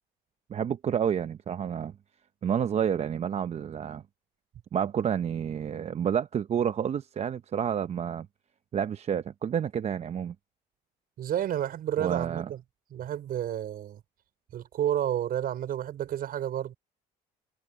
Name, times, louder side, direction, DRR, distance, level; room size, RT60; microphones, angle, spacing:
voice 1, 0.5-1.9 2.4-4.0 4.7-8.3 8.7-10.3 12.0-12.5, right 8 dB, 40° right, 0.7 m, -29 dB
voice 2, 11.2-12.6 12.9-14.0 14.5-16.8, right 11 dB, 60° right, 5.2 m, -30 dB
cardioid pair, 110°, 17 cm